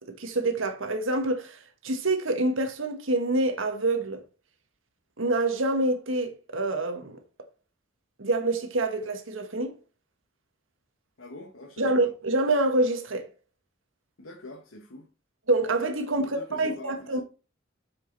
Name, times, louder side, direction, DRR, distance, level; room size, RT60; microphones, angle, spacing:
voice 1, 0.1-4.2 5.2-7.2 8.2-9.7 11.8-13.3 15.5-17.2, right 2 dB, 75° right, 1.5 m, -26 dB
voice 2, 11.2-12.1 14.2-15.1 16.1-17.2, left 2 dB, 85° left, 1.4 m, -44 dB
7.4 x 6.4 x 4.0 m
head